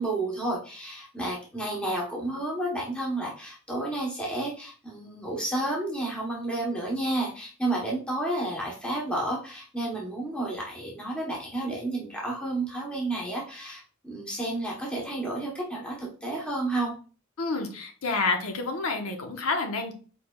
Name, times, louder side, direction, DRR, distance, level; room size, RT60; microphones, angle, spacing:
voice 1, 0.0-16.9, right 2 dB, 5° left, -3 dB, 0.9 m, -31 dB
voice 2, 17.4-19.9, left 3 dB, 80° left, 4 dB, 1.0 m, -29 dB
4.6 x 4.6 x 2.3 m, 0.38 s
head